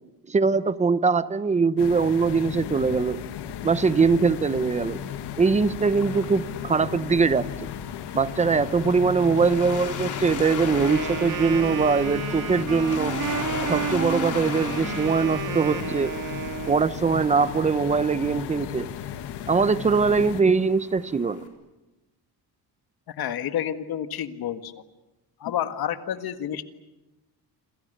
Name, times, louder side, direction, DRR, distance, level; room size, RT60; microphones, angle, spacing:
voice 1, 0.3-3.2 3.6-5.0 5.4-7.7 8.1-13.2 13.6-16.1 16.7-18.9 19.5-21.4, right 5 dB, 20° right, 14 dB, 0.8 m, -22 dB
sound 1, 1.8-20.4, left 9 dB, 85° left, 1.6 m, -35 dB
Waves surf, 3.6-21.5, left 6 dB, 50° left, 4.4 m, -39 dB
Wind instrument woodwind instrument, 10.7-17.0, right 8 dB, 50° right, 2.2 m, -32 dB
voice 2, 23.1-24.7 25.4-26.6, left 10 dB, 65° left, 9 dB, 1.7 m, -29 dB
28.5 x 27.0 x 6.7 m, 1.0 s
cardioid pair, 155°, 39 cm